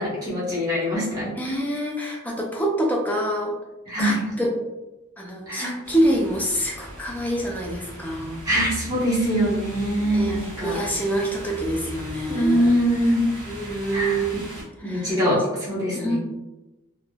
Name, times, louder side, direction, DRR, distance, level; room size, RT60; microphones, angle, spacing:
voice 1, 0.0-1.6 3.9-4.2 5.5-5.8 8.4-10.8 12.3-13.2 13.9-14.3 14.8-16.2, equal, 20° right, -8 dB, 1.0 m, -23 dB
voice 2, 1.4-3.5 4.0-4.5 5.2-8.4 10.1-12.8 13.5-14.4 14.8-15.2 16.0-16.2, right 1 dB, 10° left, -1 dB, 0.3 m, -26 dB
sound 1, 5.8-14.6, equal, 40° right, 1.0 m, -38 dB
3.2 x 2.0 x 2.2 m, 1.0 s
head